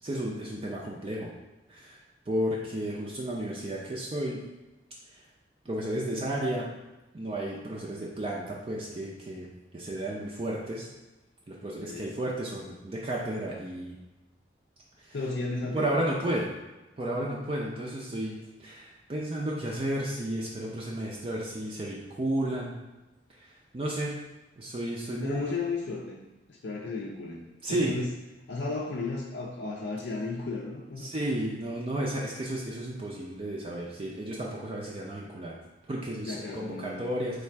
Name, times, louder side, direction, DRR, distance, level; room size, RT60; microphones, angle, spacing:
voice 1, 0.0-1.3 1.7-2.0 2.3-4.4 5.7-6.7 7.1-10.9 11.5-14.0 15.0-15.2 15.7-16.5 17.0-18.3 18.6-22.8 23.4-23.5 23.7-24.2 24.6-25.5 27.6-27.9 31.0-35.5 35.9-37.4, right 1 dB, 30° right, -4 dB, 0.4 m, -32 dB
voice 2, 11.8-12.1 15.1-16.0 25.2-26.2 26.5-27.4 27.7-28.1 28.5-31.1 36.2-37.1, left 3 dB, 70° left, -4 dB, 0.5 m, -34 dB
3.2 x 2.4 x 4.4 m, 1.0 s
head